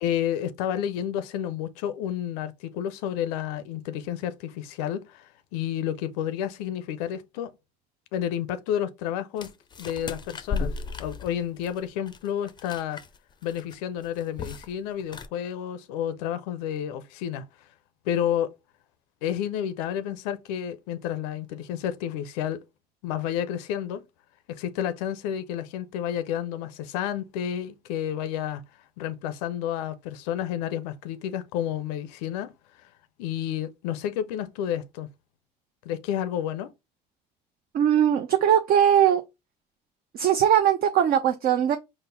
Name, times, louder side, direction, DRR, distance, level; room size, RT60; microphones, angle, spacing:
voice 1, 0.0-7.5 8.1-9.5 9.8-10.7 11.0-13.0 13.4-17.4 18.1-18.5 19.2-22.6 23.0-24.0 24.5-28.6 29.0-32.5 32.8-32.9 33.2-35.1 35.9-36.7, left 10 dB, 85° left, 0.4 m, -30 dB
sound 1, 9.4-13.2 13.4-13.7 14.0-14.7 15.0-15.3, left 5 dB, 25° left, 0.4 m, -35 dB
voice 2, 37.7-39.2 40.1-41.8, right 9 dB, 50° right, 0.5 m, -20 dB
3.8 x 2.0 x 3.7 m
supercardioid pair, 75°, 20 cm